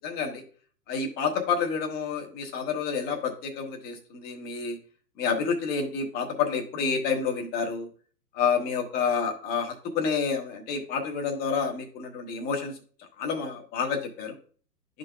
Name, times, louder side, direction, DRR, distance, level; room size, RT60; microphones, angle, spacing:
voice 1, 0.0-0.4 0.9-4.8 5.2-7.9 8.3-12.7 13.2-14.4, left 5 dB, 20° left, 4 dB, 1.0 m, -29 dB
11.5 x 3.8 x 2.2 m, 0.43 s
hypercardioid pair, 125°, 47 cm